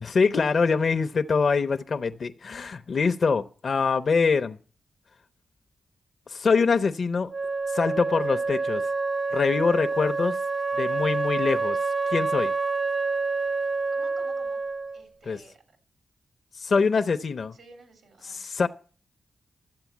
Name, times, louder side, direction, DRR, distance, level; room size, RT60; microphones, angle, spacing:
voice 1, 0.0-4.6 6.3-7.3 7.7-8.8 9.3-10.4 10.7-11.8 12.1-12.5 15.3-15.4 16.5-17.6 18.3-18.7, left 5 dB, 60° left, 0.6 m, -24 dB
Wind instrument woodwind instrument, 7.3-15.0, right 4 dB, 50° right, 0.6 m, -27 dB
voice 2, 13.9-14.6 14.9-15.8 17.5-18.4, right 3 dB, 85° right, 3.2 m, -52 dB
12.5 x 7.6 x 7.2 m
cardioid pair, 75°, 0 cm